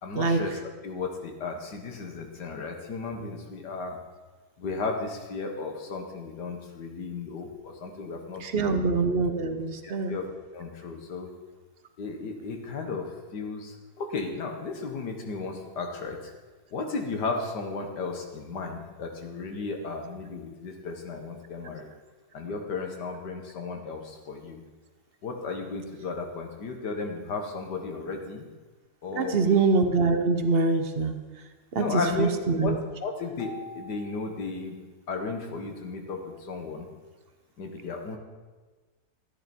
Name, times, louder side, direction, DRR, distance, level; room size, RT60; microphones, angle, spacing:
voice 1, 0.0-4.0 4.6-8.9 9.8-10.3 10.5-11.3 12.0-16.2 16.7-21.9 22.3-24.6 25.2-28.5 29.0-29.6 31.8-32.3 32.6-34.8 35.1-36.9 37.6-38.2, left 4 dB, 90° left, 3 dB, 2.0 m, -34 dB
voice 2, 8.4-10.2 29.1-31.2 31.7-31.8 32.2-32.7, right 4 dB, 45° right, 7 dB, 0.9 m, -24 dB
14.0 x 9.9 x 4.4 m, 1.3 s
omnidirectional pair, 1.7 m